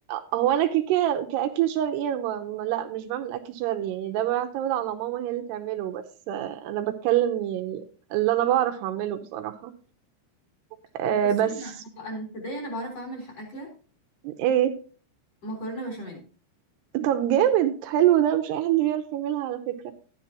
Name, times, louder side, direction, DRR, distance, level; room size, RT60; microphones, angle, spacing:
voice 1, 0.1-7.8 8.1-9.7 10.9-11.7 14.2-14.7 16.9-19.9, right 11 dB, 80° right, 7 dB, 2.8 m, -25 dB
voice 2, 11.2-13.7 15.4-16.2, right 1 dB, 40° left, 0 dB, 4.4 m, -36 dB
12.0 x 10.0 x 2.9 m, 0.37 s
omnidirectional pair, 4.9 m